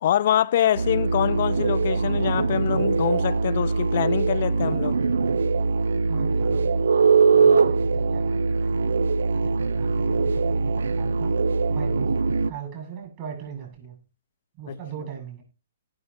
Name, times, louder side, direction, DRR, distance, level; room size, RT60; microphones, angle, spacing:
voice 1, 0.0-5.0 7.3-7.6 14.7-14.8, left 11 dB, 55° left, 0.6 m, -25 dB
sound 1, 0.8-12.5, right 4 dB, 75° right, 0.6 m, -22 dB
voice 2, 6.1-6.8 7.4-8.9 9.3-11.4 11.7-12.1 12.5-14.0 14.6-15.4, right 8 dB, 40° right, 7.7 m, -39 dB
18.0 x 7.1 x 3.4 m
hypercardioid pair, 125°, 0 cm